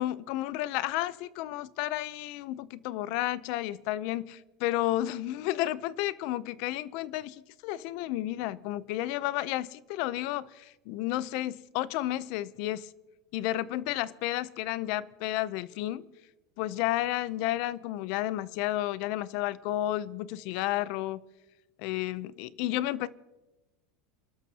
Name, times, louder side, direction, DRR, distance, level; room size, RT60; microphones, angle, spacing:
voice 1, 0.0-12.9 13.3-16.1 16.6-21.2 21.8-23.1, left 15 dB, 55° left, 0.6 m, -32 dB
28.5 x 12.5 x 2.9 m
supercardioid pair, 155°, 0 cm